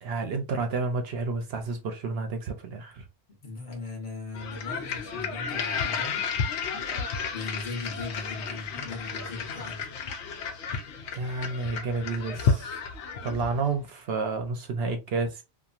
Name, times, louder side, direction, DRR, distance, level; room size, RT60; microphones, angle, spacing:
voice 1, 0.0-3.0 11.1-12.8 13.2-15.4, right 4 dB, 65° right, 0.7 m, -30 dB
voice 2, 3.3-6.3 7.3-9.9 13.3-13.5, left 3 dB, 45° left, 1.0 m, -38 dB
sound 1, 4.3-13.7, left 5 dB, 70° left, 0.9 m, -32 dB
2.9 x 2.3 x 2.4 m
omnidirectional pair, 1.2 m